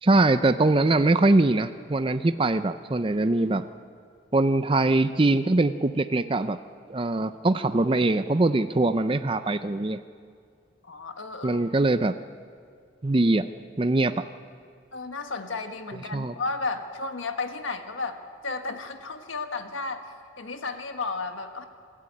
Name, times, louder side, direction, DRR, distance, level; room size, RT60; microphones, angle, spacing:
voice 1, 0.0-3.6 4.3-6.6 6.9-10.0 11.4-12.1 13.0-13.5 13.8-14.3 16.1-16.3, right 2 dB, 25° right, 11 dB, 0.5 m, -22 dB
voice 2, 10.8-11.6 14.9-20.1 20.4-21.7, left 3 dB, 85° left, 7 dB, 1.6 m, -33 dB
26.5 x 14.0 x 8.5 m, 2.2 s
head